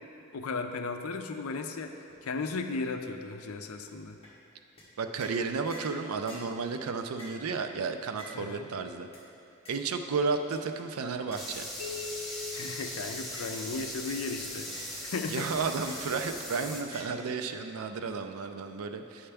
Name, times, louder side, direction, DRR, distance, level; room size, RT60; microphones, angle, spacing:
voice 1, 0.3-4.2 8.3-8.7 12.5-15.5, left 4 dB, 80° left, 6 dB, 0.5 m, -36 dB
sound 1, 2.1-2.2 2.4-2.5 2.9-3.0 3.5-3.6 3.9-4.0 4.2-4.3 4.8-4.9 5.2-5.4 5.7-6.0 6.3-6.5 7.2-7.4 8.2-8.4 9.1-9.2 9.7-9.8 10.3-10.6 11.3-11.5 12.3-12.4 12.9-13.0 13.3-13.6 14.1-14.2 14.7-14.9 15.2-15.3 15.9-16.1 16.9-17.1, equal, 25° left, 1.2 m, -47 dB
voice 2, 5.0-9.1 9.7-11.7 15.3-19.3, right 4 dB, 80° right, 7 dB, 0.4 m, -33 dB
sound 2, 11.4-16.8, left 1 dB, ahead, 0.5 m, -40 dB
sound 3, 11.8-13.7, left 4 dB, 60° right, 1.4 m, -41 dB
8.6 x 5.7 x 3.4 m, 2.6 s
head